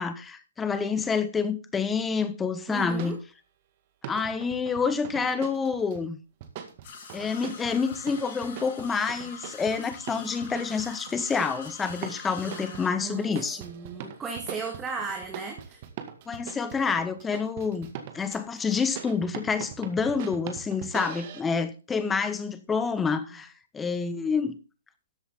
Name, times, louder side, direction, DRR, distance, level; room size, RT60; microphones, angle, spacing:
voice 1, 0.0-3.2 4.1-6.2 7.1-13.6 16.3-24.6, left 5 dB, 10° left, 1.2 m, -28 dB
voice 2, 2.7-3.2 12.4-13.3 13.6-15.8, right 5 dB, 15° right, 1.9 m, -36 dB
sound 1, 2.8-3.1 4.0-6.0 6.4-21.4, right 9 dB, 40° right, 1.9 m, -42 dB
sound 2, 6.8-12.9, left 6 dB, 45° left, 6.4 m, -44 dB
13.5 x 8.0 x 3.8 m
hypercardioid pair, 140°, 0 cm